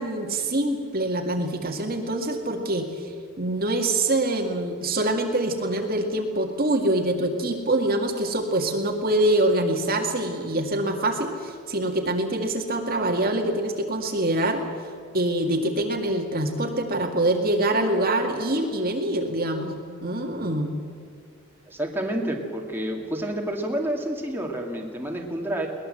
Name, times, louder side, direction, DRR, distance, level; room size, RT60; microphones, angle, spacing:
voice 1, 0.0-14.6 15.1-19.7 20.0-20.7, right 1 dB, 45° right, 3 dB, 2.1 m, -25 dB
voice 2, 21.7-25.7, right 1 dB, 10° right, 0 dB, 2.4 m, -29 dB
22.0 x 19.5 x 7.8 m, 2.2 s
head